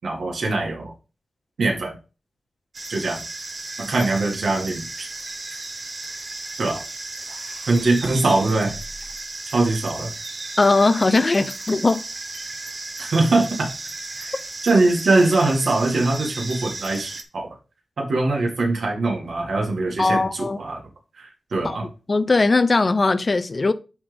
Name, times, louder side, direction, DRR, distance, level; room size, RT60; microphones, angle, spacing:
voice 1, 0.0-0.9 1.6-1.9 2.9-3.2 3.8-5.1 6.6-6.8 7.7-8.7 9.4-10.1 13.0-13.7 14.1-14.3 14.6-17.5 18.0-20.8 21.1-21.9, right 2 dB, 80° right, 2.0 m, -22 dB
sound 1, 2.7-17.2, right 2 dB, 35° right, 0.8 m, -34 dB
voice 2, 10.6-12.0 20.0-20.6 21.6-21.8 22.1-23.7, left 3 dB, 35° left, 0.5 m, -19 dB
10.5 x 3.7 x 3.5 m
wide cardioid pair, 140°, 0 cm